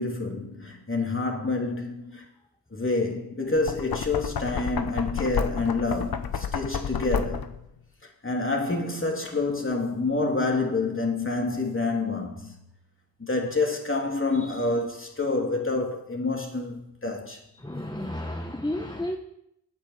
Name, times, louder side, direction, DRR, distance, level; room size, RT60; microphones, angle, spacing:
voice 1, 0.0-2.3 2.7-7.5 8.2-12.6 13.2-17.4, left 3 dB, 35° left, 3.1 m, -28 dB
Knock, 3.5-7.7, left 7 dB, 70° left, 0.9 m, -31 dB
voice 2, 17.6-19.2, left 1 dB, 10° left, 1.0 m, -32 dB
9.5 x 8.7 x 7.4 m
cardioid pair, 55°, 38 cm